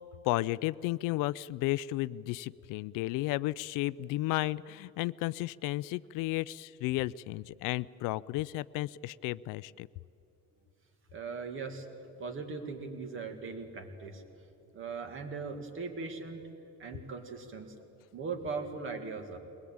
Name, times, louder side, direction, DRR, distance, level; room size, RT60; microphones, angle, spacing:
voice 1, 0.2-9.9, left 17 dB, 75° left, 19 dB, 0.5 m, -33 dB
voice 2, 11.1-11.9 12.2-14.2 14.7-16.4 16.8-17.7 18.1-19.4, right 4 dB, 40° right, 6 dB, 2.2 m, -39 dB
22.0 x 20.5 x 8.7 m, 2.7 s
cardioid pair, 170°, 33 cm